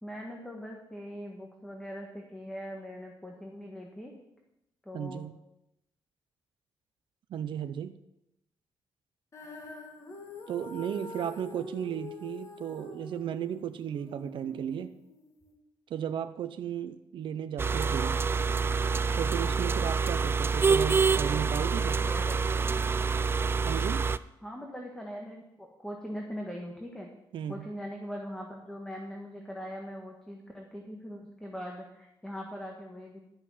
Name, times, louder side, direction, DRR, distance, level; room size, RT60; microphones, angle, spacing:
voice 1, 0.0-4.1 4.8-5.3 21.3-22.4 24.4-27.1 27.5-33.3, equal, 5° left, 0 dB, 1.6 m, -41 dB
voice 2, 4.9-5.4 7.3-7.9 10.5-15.0 15.9-18.2 19.2-22.0 23.6-24.1 27.3-27.7, right 9 dB, 65° right, 9 dB, 0.6 m, -35 dB
Female singing, 9.3-15.5, left 3 dB, 35° left, 2.1 m, -45 dB
sound 1, 17.6-24.2, right 5 dB, 25° right, 0.4 m, -27 dB
12.0 x 6.7 x 7.3 m, 0.86 s
cardioid pair, 125°, 9 cm